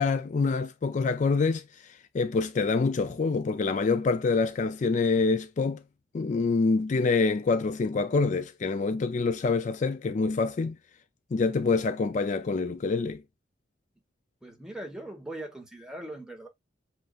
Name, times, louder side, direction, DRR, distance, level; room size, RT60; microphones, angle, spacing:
voice 1, 0.0-5.8 6.1-10.8 11.3-13.2, left 4 dB, 40° left, 0.3 m, -26 dB
voice 2, 14.4-16.5, right 1 dB, 5° right, 1.3 m, -40 dB
7.7 x 2.7 x 2.4 m
head